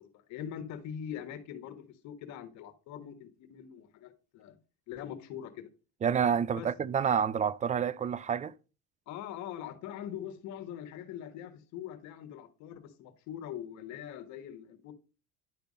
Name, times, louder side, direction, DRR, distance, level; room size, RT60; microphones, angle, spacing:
voice 1, 0.0-4.6 4.9-5.7 6.6-6.7 9.1-14.9, left 9 dB, 70° left, 1.5 m, -42 dB
voice 2, 6.0-8.5, right 7 dB, 25° right, 0.4 m, -28 dB
10.5 x 3.5 x 5.3 m
cardioid pair, 110°, 29 cm